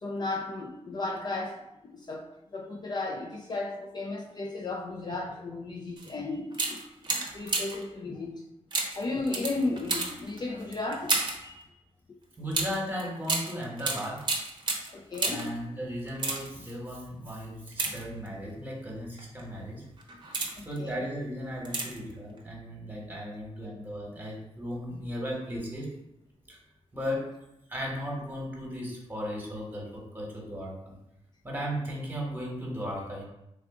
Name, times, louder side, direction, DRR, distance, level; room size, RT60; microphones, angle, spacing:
voice 1, 0.0-6.8 7.1-8.4 9.0-11.6 14.9-15.5 20.6-21.0, left 2 dB, 40° left, 1 dB, 0.4 m, -35 dB
sound 1, 6.0-6.1 6.5-7.9 8.7-11.5 12.5-15.6 16.1-16.7 17.7-18.5 19.2-19.4 20.0-20.8 21.6-22.1 22.4-22.5, right 3 dB, 40° right, 0.7 m, -32 dB
voice 2, 12.4-14.3 15.3-19.9 20.2-20.4 20.6-25.9 26.5-26.6 26.9-27.4 27.7-31.0 31.4-33.2, equal, 15° right, -3 dB, 1.2 m, -36 dB
3.6 x 2.4 x 3.6 m, 0.87 s
cardioid pair, 85°, 12 cm